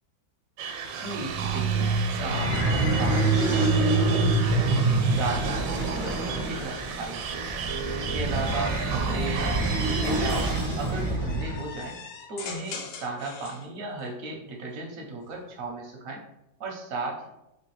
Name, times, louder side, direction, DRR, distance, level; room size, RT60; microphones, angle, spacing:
sound 1, 0.6-10.5, right 6 dB, 90° right, 1.3 m, -34 dB
voice 1, 1.0-1.9 2.2-4.2 4.6-7.2 8.0-10.4 10.8-12.0 12.3-16.2 16.6-17.3, right 3 dB, 65° right, 0 dB, 0.8 m, -35 dB
sound 2, 1.1-11.6, right 2 dB, 45° right, 0.4 m, -26 dB
sound 3, 3.4-6.7 7.5-13.7 15.1-15.7, left 5 dB, 85° left, 1.3 m, -45 dB
3.2 x 3.1 x 3.1 m, 0.88 s
omnidirectional pair, 2.0 m